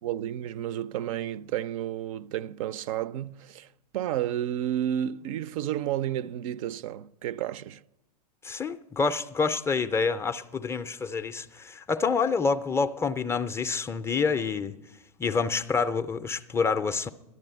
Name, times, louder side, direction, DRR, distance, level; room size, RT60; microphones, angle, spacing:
voice 1, 0.0-3.7 3.9-7.8, right 11 dB, 55° right, 0.4 m, -31 dB
voice 2, 8.4-14.7 15.2-17.1, left 5 dB, 10° left, 0.4 m, -27 dB
11.0 x 10.5 x 9.0 m
hypercardioid pair, 125°, 21 cm